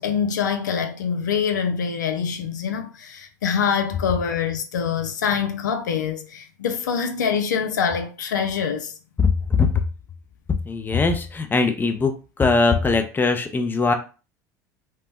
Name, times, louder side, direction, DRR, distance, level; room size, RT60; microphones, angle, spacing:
voice 1, 0.0-8.9, left 7 dB, 85° left, 0.4 m, -25 dB
voice 2, 10.6-13.9, left 4 dB, 20° left, 0.6 m, -21 dB
3.2 x 2.1 x 3.0 m
hypercardioid pair, 75°, 10 cm